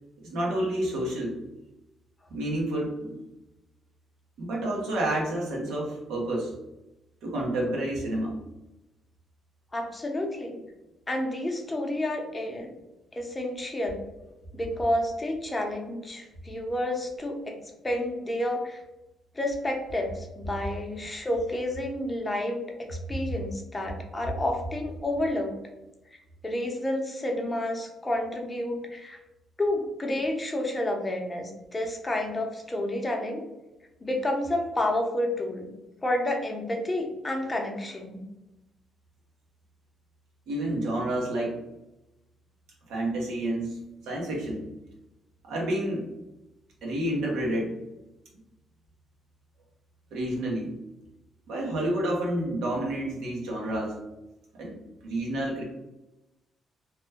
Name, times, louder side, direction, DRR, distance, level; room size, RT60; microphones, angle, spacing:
voice 1, 0.2-1.4 2.3-3.2 4.4-6.6 7.2-8.3 40.5-41.6 42.9-44.6 45.4-46.0 46.8-47.8 50.1-50.7 51.5-54.0 54.6-54.7 55.0-55.6, right 1 dB, 85° right, -2 dB, 1.0 m, -29 dB
voice 2, 9.7-10.6 11.1-12.7 13.2-14.0 14.5-17.6 17.8-18.8 19.3-25.6 26.1-29.2 29.6-33.4 34.0-35.7 36.0-38.2, left 1 dB, 20° left, 2 dB, 0.6 m, -30 dB
3.0 x 2.1 x 3.4 m, 0.97 s
cardioid pair, 90°, 0 cm